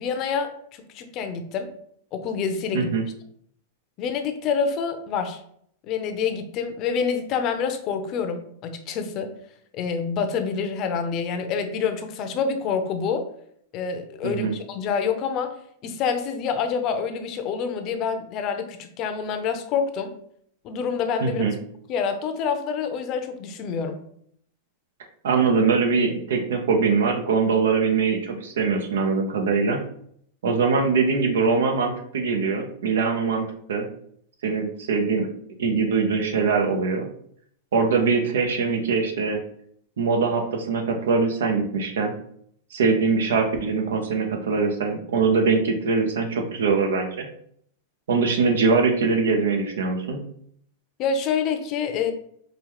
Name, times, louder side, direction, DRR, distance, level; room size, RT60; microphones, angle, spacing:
voice 1, 0.0-1.7 2.1-2.9 4.0-5.4 5.9-9.3 9.7-13.3 13.7-15.5 15.8-20.1 20.6-21.4 21.9-24.0 51.0-52.1, left 6 dB, 40° left, 8 dB, 0.6 m, -27 dB
voice 2, 2.7-3.0 14.2-14.5 21.2-21.5 25.2-29.8 30.4-33.9 34.4-35.3 35.6-37.1 37.7-39.4 40.0-42.1 42.7-47.3 48.1-50.2, right 4 dB, 85° right, 4 dB, 0.8 m, -22 dB
5.0 x 2.3 x 3.1 m, 0.66 s
supercardioid pair, 135°, 0 cm